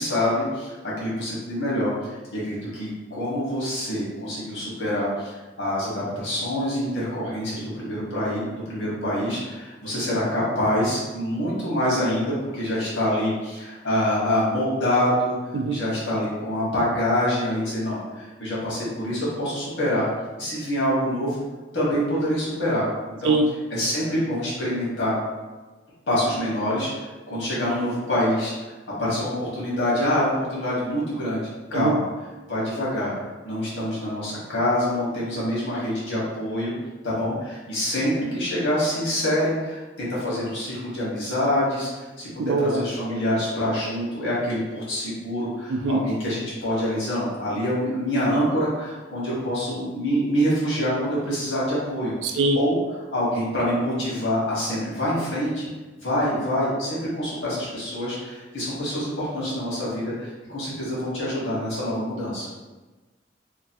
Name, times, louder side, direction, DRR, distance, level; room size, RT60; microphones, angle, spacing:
voice 1, 0.0-15.3 15.7-20.1 20.4-21.4 21.7-22.9 23.2-23.3 23.7-25.2 26.1-28.5 29.0-32.0 32.5-33.1 33.4-36.7 37.0-41.9 42.2-52.8 53.1-55.7 56.0-62.5, equal, 90° left, -7 dB, 1.3 m, -26 dB
voice 2, 42.4-42.8 45.7-46.0 52.2-52.6, right 3 dB, 85° right, 4 dB, 0.3 m, -22 dB
3.0 x 2.3 x 2.7 m, 1.2 s
head